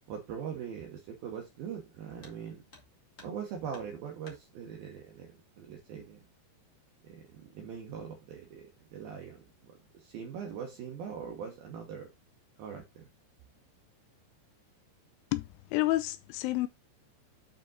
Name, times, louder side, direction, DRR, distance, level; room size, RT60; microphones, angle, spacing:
voice 1, 0.1-2.6 3.2-6.2 7.0-12.1 12.6-13.1, right 7 dB, 70° right, 2.4 m, -42 dB
sound 1, 2.2-2.4 2.7-3.4 3.7-4.4 5.6-5.7 6.2-6.3 7.0-7.4 7.8-8.2, left 3 dB, 40° left, 1.3 m, -55 dB
voice 2, 15.3-16.7, left 18 dB, 90° left, 3.1 m, -30 dB
8.7 x 5.1 x 3.9 m
omnidirectional pair, 5.4 m